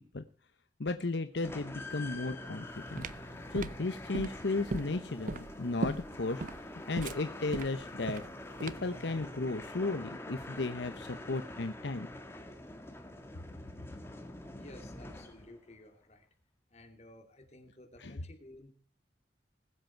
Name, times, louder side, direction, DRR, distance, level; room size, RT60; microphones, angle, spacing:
voice 1, 0.8-3.1 3.5-6.4 6.9-8.2 8.6-12.1 18.0-18.1, left 3 dB, 75° left, 9 dB, 0.9 m, -34 dB
sound 1, 1.4-15.7, left 1 dB, 15° left, 1.5 m, -46 dB
sound 2, 2.5-9.0, right 2 dB, 45° right, 0.6 m, -39 dB
voice 2, 14.6-16.3 16.7-18.7, left 1 dB, 35° left, 4 dB, 2.7 m, -54 dB
20.5 x 7.9 x 4.5 m, 0.39 s
head